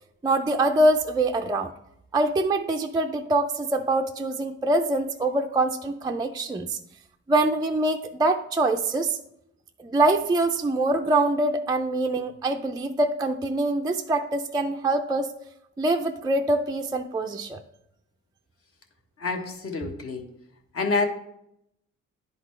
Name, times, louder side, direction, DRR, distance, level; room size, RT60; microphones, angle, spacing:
voice 1, 0.2-1.7 2.1-6.8 7.3-9.2 9.8-15.3 15.8-17.6, right 2 dB, 15° right, 4 dB, 0.4 m, -24 dB
voice 2, 19.2-20.3 20.7-21.1, left 4 dB, 50° left, 4 dB, 1.2 m, -27 dB
10.5 x 4.0 x 3.2 m, 0.78 s
cardioid pair, 90°, 30 cm